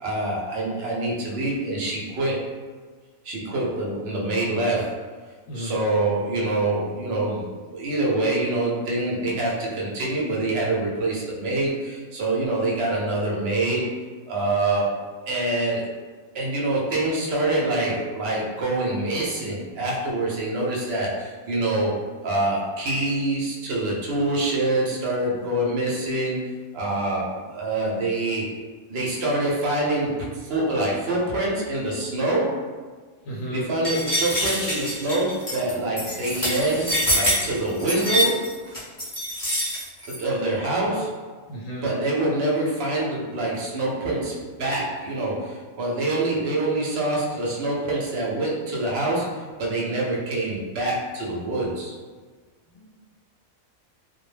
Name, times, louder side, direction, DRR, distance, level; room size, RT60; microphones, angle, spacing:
voice 1, 0.0-2.4 3.2-5.1 5.5-13.9 14.3-15.9 16.3-26.5 26.7-28.4 28.9-32.7 33.5-38.6 40.1-41.3 41.8-51.9, right 2 dB, 60° right, -4 dB, 0.7 m, -25 dB
voice 2, 5.5-5.8 33.2-33.7 41.5-41.9 52.7-52.8, right 1 dB, 75° left, -6 dB, 1.0 m, -33 dB
sound 1, 33.8-40.2, equal, 20° left, 0.5 m, -25 dB
2.2 x 2.1 x 3.1 m, 1.4 s
omnidirectional pair, 1.4 m